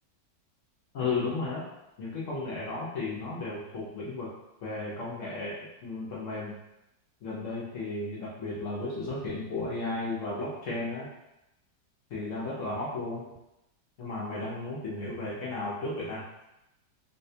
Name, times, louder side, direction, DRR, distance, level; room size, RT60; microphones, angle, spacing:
voice 1, 0.9-1.6 2.0-4.3 4.6-6.5 7.2-11.1 12.1-13.2 14.0-16.2, left 3 dB, 60° left, -5 dB, 0.8 m, -34 dB
4.1 x 2.2 x 2.7 m, 0.90 s
omnidirectional pair, 2.0 m